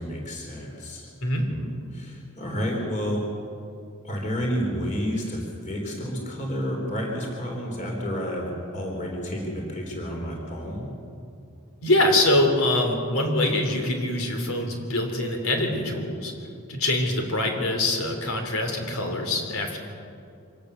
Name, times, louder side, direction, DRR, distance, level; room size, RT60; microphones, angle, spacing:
voice 1, 0.0-1.1 1.5-3.3 4.0-10.9, equal, 35° left, 0 dB, 3.5 m, -30 dB
voice 2, 11.8-16.3 16.7-19.8, left 1 dB, 80° left, 3 dB, 3.6 m, -24 dB
25.0 x 17.0 x 6.9 m, 2.5 s
head